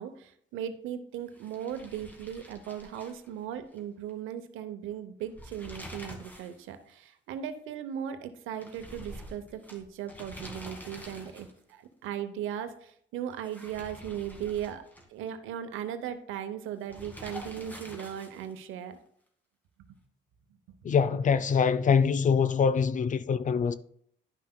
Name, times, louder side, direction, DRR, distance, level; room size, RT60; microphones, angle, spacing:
voice 1, 0.0-14.8 15.1-19.0, right 9 dB, 90° right, 0.7 m, -37 dB
sound 1, 1.3-3.8 4.1-4.2 5.2-6.6 6.9-7.0 8.6-11.7 13.3-15.3 16.9-18.6, equal, 10° left, 1.5 m, -46 dB
voice 2, 20.8-23.7, left 6 dB, 40° left, 0.4 m, -24 dB
11.0 x 5.7 x 2.2 m
cardioid pair, 90°, 20 cm